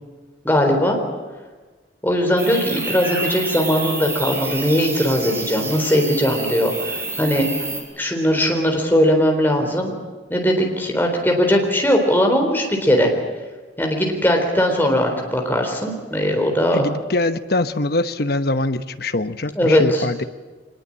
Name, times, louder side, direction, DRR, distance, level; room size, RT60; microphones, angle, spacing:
voice 1, 0.4-1.0 2.0-7.5 8.0-9.9 10.3-13.1 13.8-16.9 19.6-20.1, equal, 10° left, 2 dB, 3.9 m, -19 dB
Hungary Meadow Afternoon Birds Crickets, 2.4-7.8, right 3 dB, 15° right, 5.0 m, -28 dB
voice 2, 16.7-20.2, left 2 dB, 55° left, 11 dB, 1.0 m, -23 dB
24.5 x 20.5 x 8.8 m, 1.3 s
head